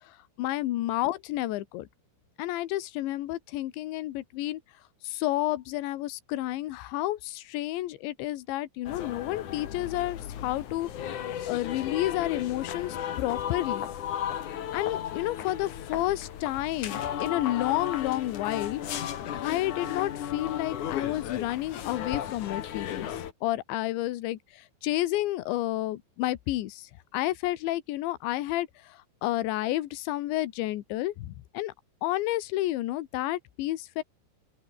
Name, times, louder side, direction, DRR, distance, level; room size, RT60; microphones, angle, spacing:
voice 1, 0.0-1.9 2.4-4.6 5.0-11.2 11.5-13.9 14.7-23.1 23.4-31.7 32.0-34.0, left 15 dB, 80° left, 3.6 m, -31 dB
sound 1, 8.8-23.3, left 10 dB, 55° left, 2.7 m, -35 dB
open air
omnidirectional pair, 5.2 m